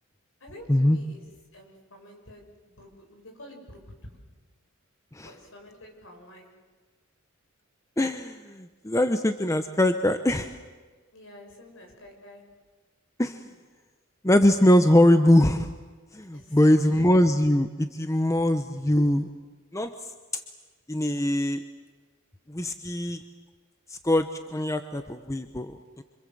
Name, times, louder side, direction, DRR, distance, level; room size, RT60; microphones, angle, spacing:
voice 1, 0.4-1.2 1.5-4.2 5.2-6.5 11.1-12.4 16.3-17.1, left 1 dB, 60° left, 2 dB, 6.9 m, -48 dB
voice 2, 8.0-10.5 13.2-13.4 14.2-15.7 16.1-19.3 19.7-19.9 20.3-20.4 20.9-21.6 22.5-23.2 23.9-26.0, left 1 dB, 15° left, 8 dB, 0.9 m, -22 dB
27.0 x 26.0 x 7.8 m, 1.4 s
head